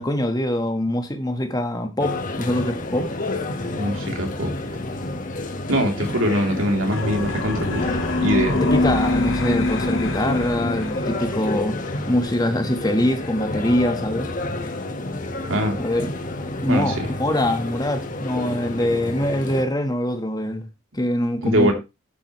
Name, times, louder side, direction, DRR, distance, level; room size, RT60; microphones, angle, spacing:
voice 1, 0.0-3.1 8.5-11.8 12.1-14.3 15.8-16.1 16.6-20.7 20.9-21.7, left 1 dB, 20° left, 1.5 m, -23 dB
sound 1, 2.0-19.6, left 2 dB, 40° left, 1.5 m, -30 dB
voice 2, 3.7-4.5 5.7-7.9 8.2-8.6 15.5-15.8 16.7-16.9 21.4-21.7, equal, 85° right, 3.3 m, -22 dB
sound 2, 6.9-11.6, left 2 dB, 90° left, 2.0 m, -24 dB
12.0 x 8.8 x 3.2 m
head